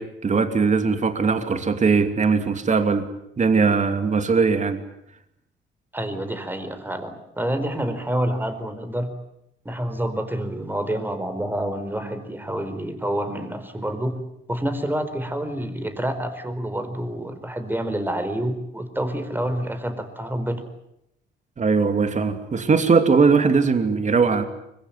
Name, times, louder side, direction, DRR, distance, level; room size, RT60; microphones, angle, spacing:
voice 1, 0.0-3.1 3.4-4.8 21.6-24.4, right 5 dB, 35° right, 7 dB, 2.7 m, -20 dB
voice 2, 5.9-9.1 9.6-14.2 14.5-20.6, right 1 dB, 10° right, 9 dB, 4.7 m, -28 dB
24.5 x 22.0 x 9.4 m, 0.80 s
cardioid pair, 90°, 20 cm